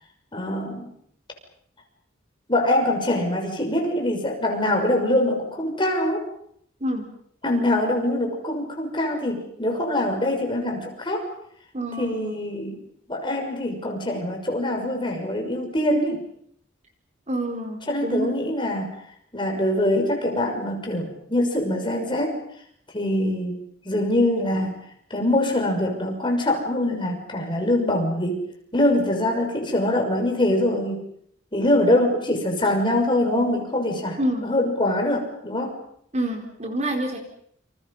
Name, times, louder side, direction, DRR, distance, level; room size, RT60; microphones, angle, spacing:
voice 1, 0.3-0.9 2.5-6.2 7.4-11.3 12.0-12.8 13.1-16.2 17.9-19.0 19.3-22.3 22.9-23.6 23.8-24.8 25.1-28.4 28.7-31.1 31.5-35.8, left 1 dB, 25° left, 2 dB, 6.3 m, -23 dB
voice 2, 11.7-12.4 17.3-18.3 34.2-34.5 36.1-37.2, right 1 dB, 35° right, 3 dB, 4.4 m, -27 dB
29.5 x 27.5 x 5.7 m, 0.68 s
head